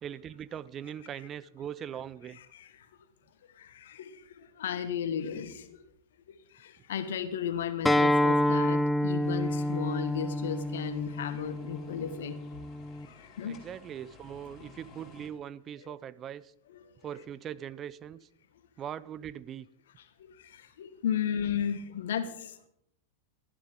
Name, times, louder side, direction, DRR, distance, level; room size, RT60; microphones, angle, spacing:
voice 1, 0.0-2.4 13.4-16.5 17.0-18.2 18.8-19.7, right 9 dB, 25° right, 0.4 m, -41 dB
voice 2, 2.3-2.7 3.6-5.8 6.5-12.4 13.1-13.6 15.8-16.0 16.7-16.8 20.4-22.7, left 8 dB, 60° left, 1.5 m, -35 dB
Acoustic guitar, 7.9-13.1, left 1 dB, 5° left, 0.7 m, -28 dB
sound 1, 9.2-15.3, left 4 dB, 25° left, 4.9 m, -55 dB
19.0 x 13.5 x 3.7 m
figure-of-eight pair, 90°, 0 cm